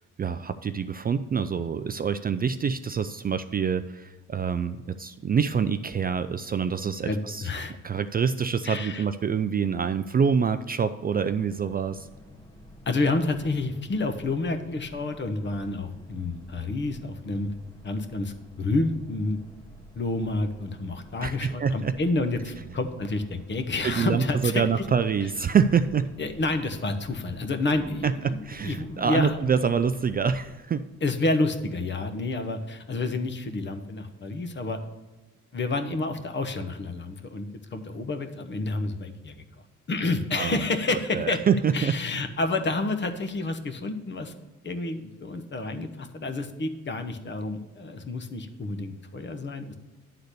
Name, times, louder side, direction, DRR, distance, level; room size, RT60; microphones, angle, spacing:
voice 1, 0.2-7.5 7.8-12.1 21.2-21.9 23.8-26.1 28.0-30.9 40.3-40.6 41.1-41.9, right 6 dB, 30° right, 11 dB, 0.4 m, -26 dB
voice 2, 7.0-7.7 8.6-9.0 12.9-17.5 17.8-19.4 19.9-24.8 25.2-25.3 26.2-29.4 31.0-34.8 35.5-39.4 39.9-41.4 41.7-44.3 44.6-49.7, left 2 dB, 35° left, 7 dB, 1.0 m, -29 dB
Boat Water vehicle, 11.2-30.6, left 1 dB, 10° left, 1.3 m, -49 dB
10.0 x 3.9 x 6.6 m, 1.2 s
cardioid pair, 90°, 30 cm